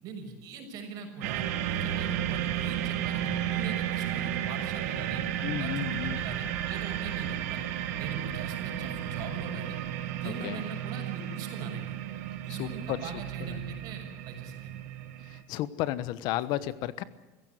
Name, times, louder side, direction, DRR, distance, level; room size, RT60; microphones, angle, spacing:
voice 1, 0.0-5.2 5.6-7.7 8.0-9.8 10.1-12.0 12.4-14.8, right 4 dB, 50° right, 5 dB, 6.4 m, -41 dB
sound 1, 1.2-15.4, right 11 dB, 85° right, 2.4 m, -33 dB
voice 2, 5.4-6.2 10.2-10.6 12.5-13.1 13.4-13.8 15.2-17.0, left 14 dB, 55° left, 16 dB, 1.2 m, -33 dB
24.5 x 16.0 x 8.0 m, 1.1 s
supercardioid pair, 140°, 8 cm